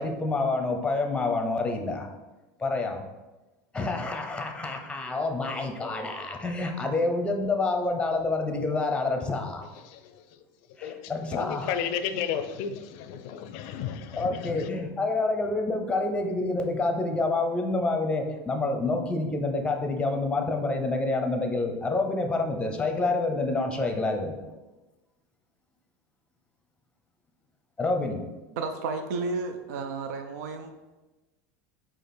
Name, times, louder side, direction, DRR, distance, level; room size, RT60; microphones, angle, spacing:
voice 1, 0.0-2.1 2.6-3.0 3.7-9.6 10.8-11.7 14.1-24.5 27.8-28.3, left 3 dB, 10° left, 3 dB, 0.6 m, -28 dB
voice 2, 9.7-10.4 10.8-14.7, left 8 dB, 65° left, 9 dB, 0.5 m, -33 dB
voice 3, 28.6-30.7, right 3 dB, 80° right, 6 dB, 0.5 m, -32 dB
4.8 x 2.4 x 4.3 m, 1.1 s
supercardioid pair, 120°, 9 cm